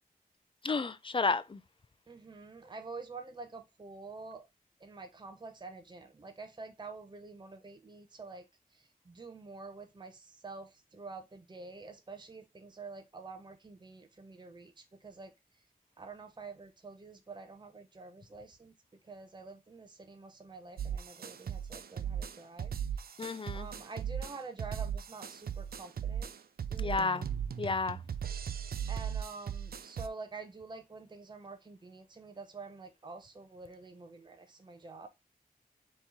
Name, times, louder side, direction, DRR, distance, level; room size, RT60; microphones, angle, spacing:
voice 1, 0.6-1.6 23.2-23.7 26.8-27.3 27.6-28.0, left 4 dB, 35° left, 0.4 m, -31 dB
voice 2, 2.1-4.5 4.8-15.3 16.0-18.8 19.0-23.2 23.5-26.3 26.6-27.1 28.9-35.1, right 3 dB, 30° right, 0.6 m, -48 dB
sound 1, 20.8-30.1, right 8 dB, 80° right, 0.4 m, -37 dB
4.3 x 3.1 x 3.5 m
wide cardioid pair, 70°, 15 cm